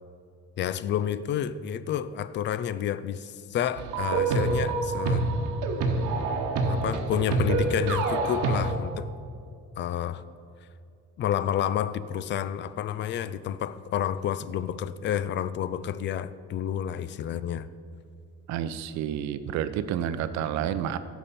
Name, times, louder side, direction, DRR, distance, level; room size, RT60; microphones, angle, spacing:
voice 1, 0.6-5.3 6.6-9.1 9.8-10.2 11.2-17.7, left 10 dB, 40° left, 15 dB, 0.4 m, -30 dB
sound 1, 3.8-8.7, right 3 dB, 90° right, 1.1 m, -26 dB
voice 2, 18.5-21.0, right 10 dB, 65° right, 12 dB, 0.6 m, -29 dB
16.0 x 7.2 x 4.3 m, 2.4 s
cardioid pair, 155°, 30 cm